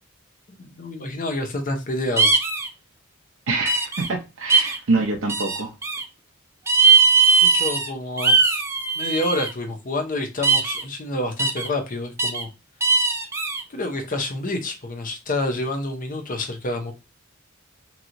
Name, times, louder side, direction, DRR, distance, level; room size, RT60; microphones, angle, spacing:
voice 1, 0.5-2.3 7.4-8.6 9.0-12.5 13.7-16.9, left 1 dB, 40° left, 0.7 m, -28 dB
sound 1, 2.2-2.7 3.7-4.1 4.5-4.8 5.3-6.0 6.7-7.9 8.2-9.5 10.4-10.8 11.4-11.7 12.2-12.4 12.8-13.6, right 4 dB, 15° right, 0.4 m, -19 dB
voice 2, 3.5-5.7, right 3 dB, 65° right, 0.6 m, -25 dB
2.9 x 2.8 x 2.5 m
head